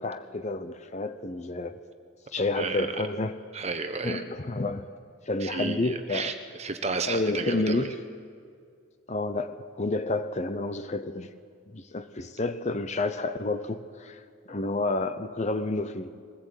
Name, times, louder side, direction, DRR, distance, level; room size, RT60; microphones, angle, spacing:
voice 1, 0.0-1.8 2.3-3.4 4.0-4.9 5.3-6.3 7.1-8.0 9.1-11.3 11.7-14.2 14.5-16.1, left 2 dB, 30° left, 0.6 m, -30 dB
voice 2, 2.5-3.0 3.5-4.2 5.4-7.9, right 4 dB, 30° right, 1.2 m, -32 dB
22.0 x 16.5 x 8.1 m
head